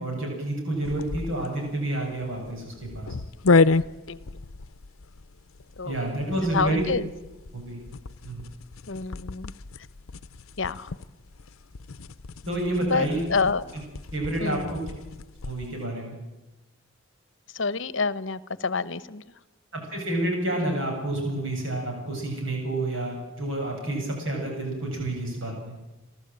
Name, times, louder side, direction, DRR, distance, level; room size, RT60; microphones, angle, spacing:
voice 1, 0.0-3.1 5.8-6.8 7.5-7.8 8.2-8.4 12.5-13.2 14.1-14.8 15.4-16.2 19.9-25.7, right 1 dB, 70° right, 1 dB, 7.6 m, -29 dB
sound 1, 0.8-15.8, left 3 dB, 85° left, 0.7 m, -31 dB
voice 2, 6.5-7.1 8.9-9.5 10.6-10.9 12.9-13.6 14.4-14.7 17.5-19.2, left 4 dB, 65° left, 17 dB, 0.9 m, -28 dB
29.5 x 13.0 x 8.9 m, 1.0 s
head